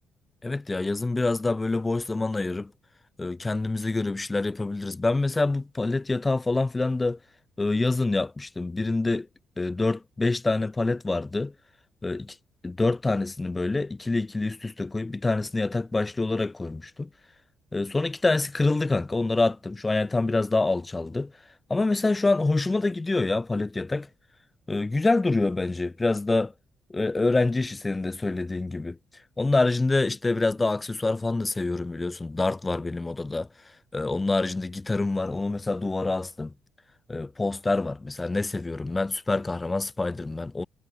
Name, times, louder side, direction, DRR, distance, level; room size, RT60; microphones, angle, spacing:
voice 1, 0.4-2.7 3.2-7.2 7.6-9.3 9.6-11.5 12.0-12.3 12.6-17.1 17.7-21.3 21.7-24.1 24.7-26.5 26.9-29.0 29.4-33.5 33.9-36.5 37.1-40.7, left 3 dB, 15° left, 0.4 m, -26 dB
cardioid pair, 135°, 0 cm